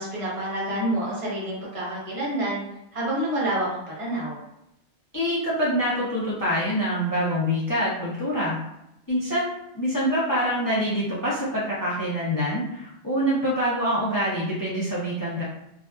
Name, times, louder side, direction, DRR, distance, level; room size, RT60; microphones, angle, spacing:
voice 1, 0.0-2.6 2.9-4.4, right 1 dB, 30° right, -7 dB, 1.1 m, -28 dB
voice 2, 5.1-8.6 9.1-9.5 9.7-15.4, equal, 25° left, -7 dB, 0.4 m, -25 dB
2.6 x 2.4 x 2.3 m, 0.84 s
omnidirectional pair, 1.2 m